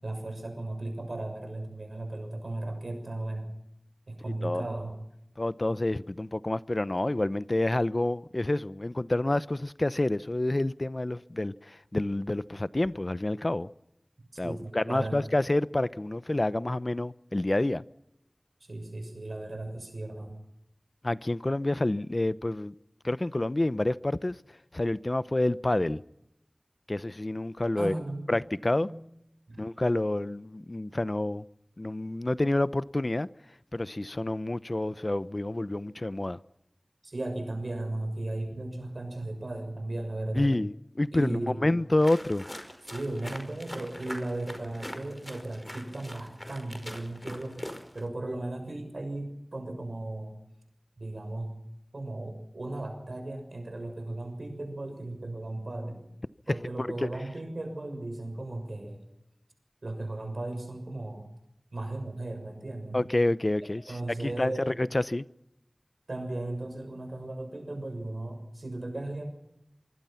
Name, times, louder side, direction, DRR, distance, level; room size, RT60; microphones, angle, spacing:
voice 1, 0.0-3.5 4.1-5.0 14.4-15.2 18.6-20.4 27.8-28.3 28.8-29.0 29.5-29.6 37.0-40.5 41.1-41.7 42.9-50.4 51.0-51.6 51.9-56.0 56.5-59.1 59.8-61.3 61.7-63.0 63.9-64.8 66.1-69.3, right 2 dB, 90° right, 6.5 m, -36 dB
voice 2, 5.4-13.7 14.4-17.8 21.0-22.7 23.0-24.4 24.7-26.0 26.9-27.9 28.3-28.9 29.6-31.5 31.8-33.3 33.7-36.4 40.3-42.5 56.8-57.1 62.9-64.0 64.2-65.3, left 1 dB, 50° left, 0.8 m, -28 dB
sound 1, 42.0-48.1, equal, 20° left, 5.2 m, -43 dB
25.0 x 24.5 x 5.9 m
wide cardioid pair, 40°, 0 cm